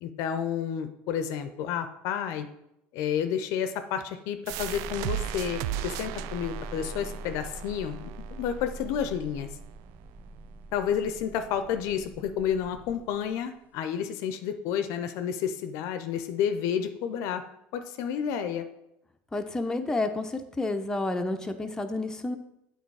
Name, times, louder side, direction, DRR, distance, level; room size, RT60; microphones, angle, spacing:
voice 1, 0.0-2.5 2.9-8.1 8.4-9.5 10.7-17.4 17.7-18.6, left 8 dB, 65° left, 9 dB, 0.6 m, -30 dB
sound 1, 4.5-13.4, right 2 dB, 30° right, 0.7 m, -43 dB
sound 2, 4.5-9.9, right 14 dB, 70° right, 0.3 m, -37 dB
voice 2, 19.3-22.4, left 2 dB, 10° left, 5 dB, 0.7 m, -30 dB
8.2 x 3.9 x 4.8 m, 0.82 s
supercardioid pair, 90°, 6 cm